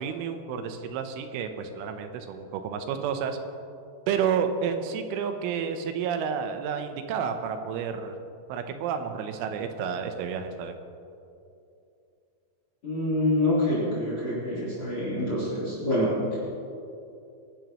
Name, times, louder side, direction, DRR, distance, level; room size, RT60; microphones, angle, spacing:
voice 1, 0.0-3.4 4.1-8.2 8.5-10.8, right 7 dB, 85° right, 7 dB, 3.3 m, -30 dB
voice 2, 12.8-16.1, left 1 dB, 30° left, -7 dB, 4.1 m, -26 dB
24.0 x 12.0 x 3.1 m, 2.6 s
omnidirectional pair, 5.6 m